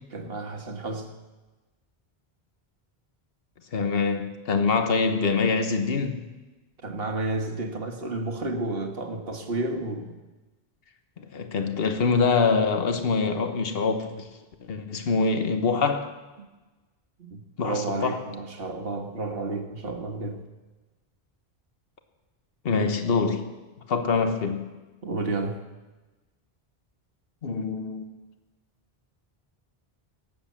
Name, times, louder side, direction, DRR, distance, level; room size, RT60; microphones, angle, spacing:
voice 1, 0.1-1.2 6.8-10.2 17.2-20.4 25.0-25.7, right 2 dB, 65° right, 1.7 m, -31 dB
voice 2, 3.7-6.2 11.2-14.3 14.6-16.1 17.6-18.2 22.6-23.4 23.9-24.7 27.4-28.1, left 4 dB, 65° left, 1.3 m, -25 dB
17.5 x 7.9 x 7.4 m
omnidirectional pair, 1.1 m